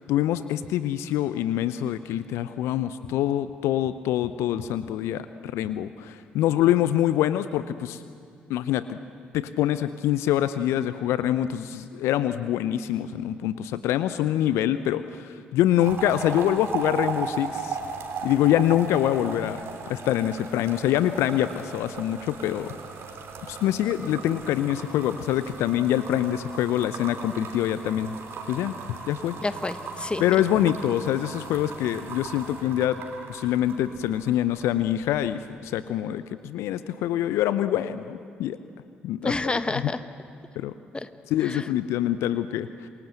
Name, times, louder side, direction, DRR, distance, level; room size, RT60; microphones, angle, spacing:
voice 1, 0.0-8.0 8.5-9.0 9.3-17.8 18.2-22.7 23.4-28.1 28.5-28.8 29.1-29.4 30.2-33.0 33.3-38.6 39.0-39.6 40.6-40.7 41.3-42.9, left 12 dB, 65° left, 13 dB, 0.7 m, -25 dB
sound 1, 15.8-34.7 35.0-35.4, right 5 dB, 55° right, 3.5 m, -37 dB
voice 2, 29.4-30.2 39.2-40.0 40.9-41.1 41.4-41.7, left 2 dB, 20° left, 11 dB, 1.4 m, -29 dB
27.5 x 23.0 x 7.8 m, 2.4 s
figure-of-eight pair, 45°, 5 cm